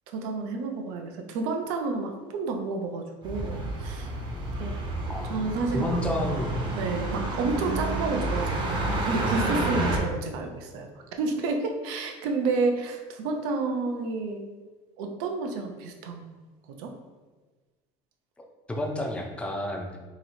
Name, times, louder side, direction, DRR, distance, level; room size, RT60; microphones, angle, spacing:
voice 1, 0.1-4.1 4.6-4.7 5.3-6.0 6.8-10.9 11.2-14.4 15.0-16.5 16.8-16.9, right 3 dB, 90° right, 4 dB, 0.6 m, -30 dB
sound 1, 3.2-10.0, right 2 dB, 30° right, 0.7 m, -30 dB
voice 2, 5.7-6.5 18.7-19.9, left 1 dB, 10° left, 1 dB, 0.4 m, -30 dB
3.0 x 2.8 x 4.1 m, 1.3 s
cardioid pair, 155°, 14 cm